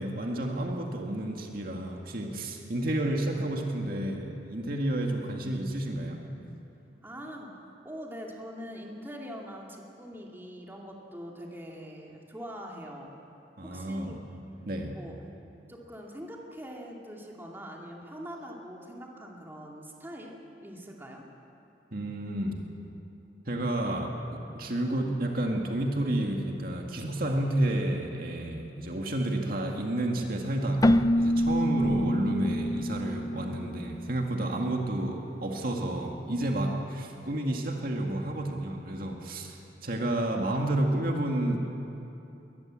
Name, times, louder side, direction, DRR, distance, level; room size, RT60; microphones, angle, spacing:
voice 1, 0.0-6.2 13.6-14.2 14.7-15.0 21.9-22.6 23.5-39.6 39.8-41.6, right 1 dB, 55° right, 1 dB, 2.1 m, -30 dB
voice 2, 7.0-7.6 7.8-13.2 13.6-14.3 14.9-15.2 15.7-21.3, equal, 15° right, -1 dB, 2.5 m, -43 dB
Keyboard (musical), 30.8-34.4, left 1 dB, 20° left, 0.4 m, -26 dB
22.0 x 19.5 x 7.6 m, 2.9 s
head